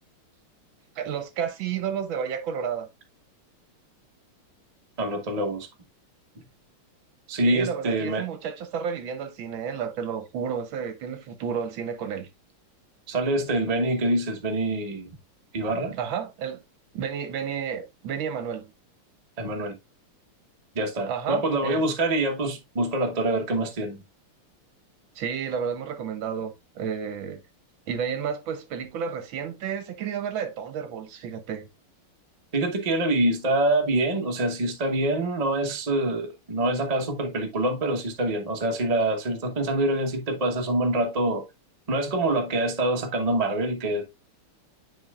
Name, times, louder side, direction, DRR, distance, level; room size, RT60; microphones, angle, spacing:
voice 1, 1.0-2.9 7.4-12.3 15.9-16.6 16.9-18.7 21.1-21.8 25.1-27.4 27.9-31.7, right 7 dB, 70° right, 1.5 m, -31 dB
voice 2, 5.0-5.7 7.3-8.3 13.1-15.1 15.5-15.9 19.4-19.8 20.7-24.0 32.5-41.4 41.9-44.0, right 1 dB, 35° right, 0.6 m, -25 dB
9.9 x 4.3 x 2.4 m
omnidirectional pair, 2.4 m